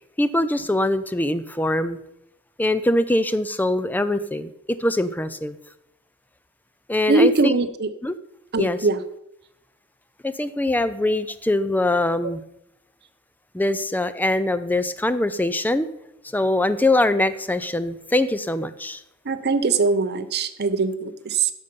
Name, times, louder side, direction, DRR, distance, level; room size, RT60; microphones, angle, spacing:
voice 1, 0.2-2.0 2.6-5.6 6.9-7.5 8.0-8.2 8.6-8.8 10.2-12.4 13.5-15.9 16.3-19.0, left 1 dB, 10° left, 13 dB, 0.4 m, -23 dB
voice 2, 7.1-7.9 8.5-9.0 19.3-21.5, right 3 dB, 50° right, 10 dB, 0.7 m, -21 dB
10.5 x 6.8 x 5.3 m, 0.81 s
head